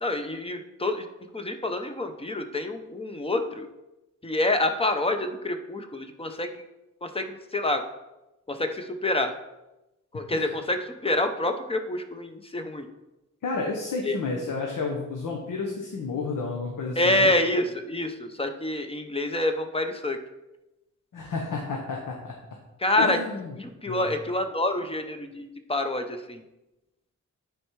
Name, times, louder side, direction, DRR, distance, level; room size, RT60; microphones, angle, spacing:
voice 1, 0.0-1.1 1.3-3.7 4.2-6.6 7.0-7.8 8.5-9.3 10.1-12.9 14.0-14.1 17.0-20.2 22.8-23.2 23.6-26.4, left 1 dB, 20° left, 7 dB, 0.7 m, -27 dB
voice 2, 13.4-17.3 21.1-22.3 23.0-23.5 23.9-24.1, left 4 dB, 85° left, 0 dB, 1.1 m, -31 dB
9.8 x 4.4 x 4.6 m, 0.97 s
wide cardioid pair, 145°, 31 cm